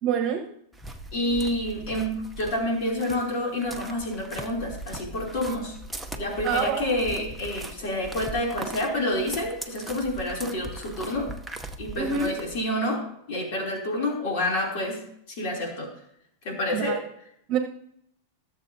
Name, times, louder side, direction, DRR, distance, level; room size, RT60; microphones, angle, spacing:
voice 1, 0.0-0.5 6.4-6.9 11.9-12.3 16.7-17.0 17.5-17.6, right 7 dB, 40° right, 4 dB, 1.1 m, -26 dB
sound 1, 0.7-12.6, right 2 dB, ahead, 0.8 m, -40 dB
voice 2, 1.1-5.7 6.2-11.3 11.8-15.9 16.4-17.0, left 1 dB, 55° left, 0 dB, 3.1 m, -28 dB
16.5 x 7.3 x 2.8 m, 0.72 s
supercardioid pair, 130°, 0 cm